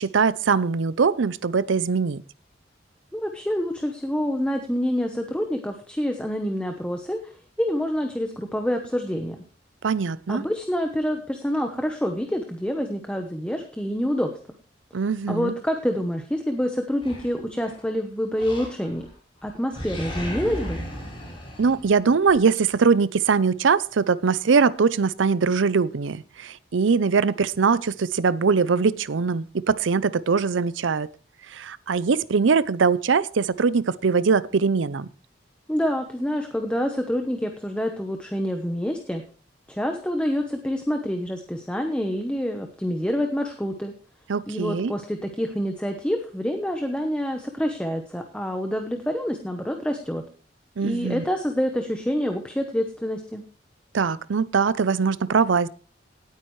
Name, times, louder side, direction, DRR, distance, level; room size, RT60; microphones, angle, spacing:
voice 1, 0.0-2.2 9.8-10.4 14.9-15.5 21.6-31.1 31.5-35.1 44.3-44.9 50.8-51.2 53.9-55.7, right 5 dB, 85° right, 0.5 m, -22 dB
voice 2, 3.1-9.4 10.3-14.3 15.3-19.1 19.4-20.8 35.7-39.2 39.7-43.9 44.5-50.2 50.8-53.4, equal, 5° left, 0.9 m, -27 dB
Animal, 17.0-17.8 18.4-19.1 19.4-22.4, equal, 25° left, 6.3 m, -35 dB
18.0 x 9.1 x 3.2 m
head